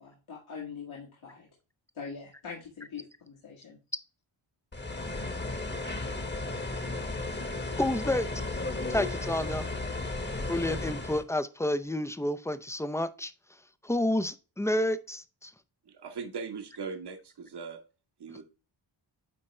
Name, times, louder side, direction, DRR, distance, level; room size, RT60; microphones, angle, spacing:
voice 1, 0.0-1.5 1.9-3.8, left 5 dB, 80° left, 2.2 m, -43 dB
sound 1, 4.7-11.2, left 2 dB, 20° left, 1.1 m, -34 dB
voice 2, 7.8-8.3 8.9-9.7 10.5-13.3 13.8-15.5, left 1 dB, 5° left, 0.5 m, -30 dB
voice 3, 15.9-17.8 18.2-18.4, right 5 dB, 55° right, 1.2 m, -39 dB
9.9 x 3.6 x 3.1 m
cardioid pair, 80°, 48 cm